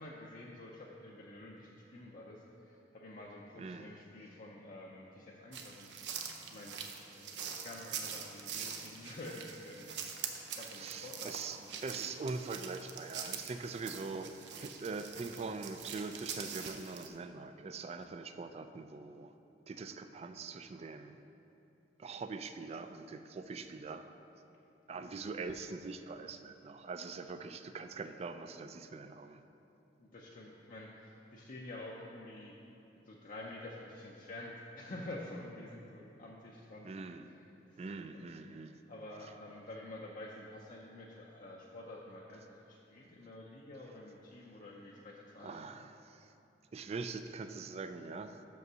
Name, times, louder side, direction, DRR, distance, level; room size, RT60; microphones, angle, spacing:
voice 1, 0.0-6.8 7.2-10.0 10.3-11.8 24.9-25.0 30.0-32.6 32.9-36.9 37.3-37.4 37.7-38.0 38.9-45.6, left 1 dB, 50° left, -3 dB, 0.6 m, -49 dB
voice 2, 3.6-4.0 10.5-14.3 14.6-19.3 19.7-21.2 22.0-24.1 24.9-29.4 36.8-37.3 37.8-38.8 39.2-39.3 45.4-46.3 46.7-48.4, right 4 dB, 35° right, 9 dB, 0.3 m, -43 dB
forest-walk-crickets, 5.5-17.1, right 7 dB, 80° right, 0.6 m, -44 dB
6.3 x 5.4 x 6.1 m, 2.8 s
head